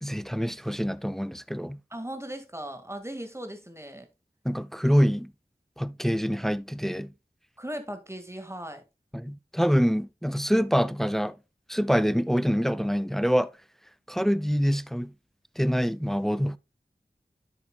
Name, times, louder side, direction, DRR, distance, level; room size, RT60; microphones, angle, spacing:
voice 1, 0.0-1.8 4.4-5.3 5.8-7.1 9.1-11.3 11.7-13.5 14.1-15.1 15.6-16.6, equal, ahead, 0.5 m, -25 dB
voice 2, 1.9-4.1 7.6-8.8, right 1 dB, 15° right, 1.9 m, -38 dB
10.5 x 7.2 x 2.3 m
wide cardioid pair, 45°, 16 cm